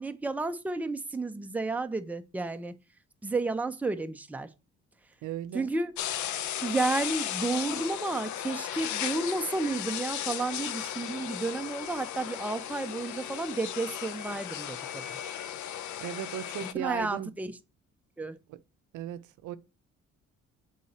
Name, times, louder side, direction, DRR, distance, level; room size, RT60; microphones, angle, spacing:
voice 1, 0.0-2.7 3.2-4.5 5.5-6.0 6.6-15.2 16.7-17.6 18.2-18.4, right 3 dB, 5° right, 0.5 m, -32 dB
voice 2, 5.2-5.7 16.0-17.3 18.5-18.6 18.9-19.6, right 13 dB, 85° right, 0.6 m, -36 dB
sound 1, 6.0-16.7, left 11 dB, 75° left, 0.6 m, -36 dB
6.3 x 3.9 x 4.2 m
cardioid pair, 90°, 30 cm